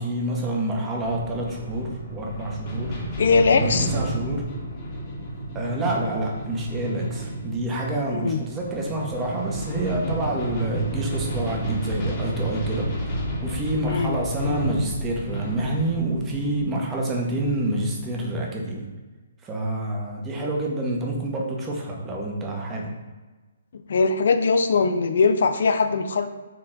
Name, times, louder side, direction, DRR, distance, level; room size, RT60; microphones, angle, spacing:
voice 1, 0.0-3.0 3.5-4.5 5.5-18.9 19.4-22.9, right 1 dB, 15° right, -1 dB, 0.8 m, -28 dB
sound 1, 1.0-18.5, right 1 dB, 35° left, 1.1 m, -31 dB
voice 2, 3.2-3.9 8.1-8.4 13.8-14.2 23.7-26.3, left 4 dB, 55° left, 8 dB, 0.4 m, -21 dB
4.5 x 3.1 x 3.8 m, 1.3 s
figure-of-eight pair, 130°, 0 cm